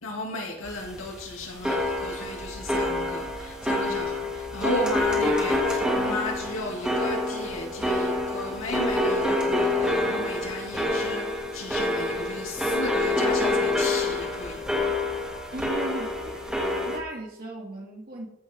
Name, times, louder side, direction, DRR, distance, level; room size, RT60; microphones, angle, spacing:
voice 1, 0.0-14.9, left 2 dB, 80° left, -1 dB, 2.9 m, -34 dB
sound 1, 0.6-17.0, left 1 dB, 5° right, 1.8 m, -27 dB
voice 2, 15.5-16.6 16.9-18.3, right 1 dB, 45° right, 0 dB, 2.6 m, -36 dB
14.0 x 7.3 x 3.8 m, 0.81 s
head